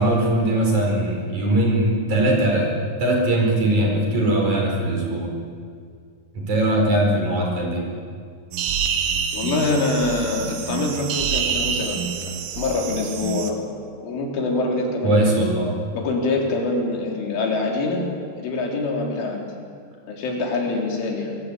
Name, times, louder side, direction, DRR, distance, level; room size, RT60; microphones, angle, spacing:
voice 1, 0.0-2.7 3.0-5.3 6.3-7.8 15.0-15.7, right 1 dB, 40° right, 0 dB, 5.7 m, -20 dB
sound 1, 8.5-13.5, right 7 dB, 85° right, 4.3 m, -27 dB
voice 2, 9.3-13.6 14.0-15.3 15.9-18.1 18.4-19.5 20.1-21.4, left 3 dB, 85° left, 0 dB, 6.1 m, -25 dB
24.0 x 23.0 x 8.6 m, 2.1 s
omnidirectional pair, 5.5 m